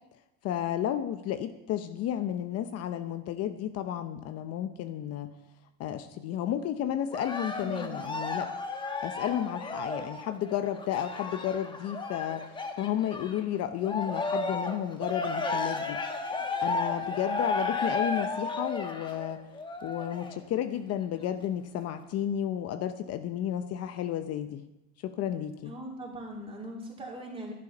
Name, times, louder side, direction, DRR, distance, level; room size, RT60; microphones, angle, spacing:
voice 1, 0.4-5.3 5.8-8.5 9.0-12.5 12.8-16.0 16.6-19.4 19.8-24.7 25.0-25.7, left 10 dB, 50° left, 10 dB, 0.7 m, -32 dB
Cheering, 7.1-13.4 13.8-20.4 21.0-21.1, left 3 dB, 15° left, 1.1 m, -33 dB
voice 2, 7.6-8.0 25.7-27.5, right 1 dB, 20° right, -1 dB, 2.9 m, -40 dB
11.0 x 11.0 x 5.4 m, 0.93 s
cardioid pair, 150°, 31 cm